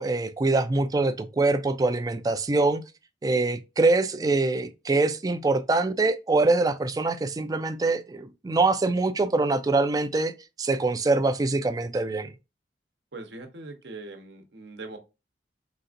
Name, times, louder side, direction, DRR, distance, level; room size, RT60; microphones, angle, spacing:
voice 1, 0.0-2.8 3.2-10.3 10.6-12.3, right 3 dB, 20° right, 0.3 m, -24 dB
voice 2, 13.1-15.0, right 2 dB, 75° right, 0.9 m, -41 dB
4.0 x 2.4 x 2.5 m
head